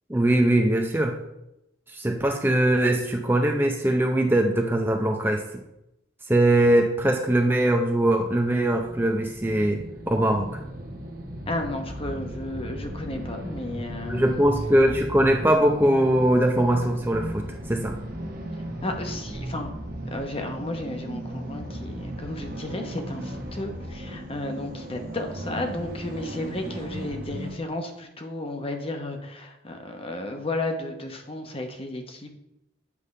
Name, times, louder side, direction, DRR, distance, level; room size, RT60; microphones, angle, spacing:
voice 1, 0.1-1.2 1.9-5.4 6.3-9.8 10.1-10.5 14.1-17.4 17.7-18.0, right 1 dB, 10° right, 3 dB, 0.5 m, -21 dB
sound 1, 8.1-27.6, right 1 dB, 50° right, 1.2 m, -36 dB
voice 2, 11.5-14.4 18.8-19.7 20.1-32.3, left 2 dB, 30° left, 4 dB, 0.9 m, -33 dB
8.3 x 3.6 x 5.4 m, 0.87 s
head